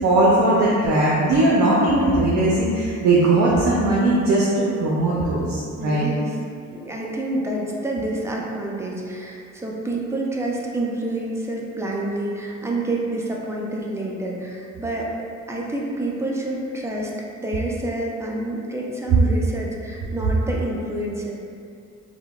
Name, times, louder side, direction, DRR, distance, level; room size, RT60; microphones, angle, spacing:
voice 1, 0.0-6.0, right 2 dB, 70° right, -6 dB, 0.5 m, -19 dB
voice 2, 5.8-6.4 6.7-15.1 15.5-21.3, right 1 dB, 10° right, -3 dB, 0.3 m, -28 dB
3.2 x 2.1 x 2.2 m, 2.4 s
cardioid pair, 90°, 30 cm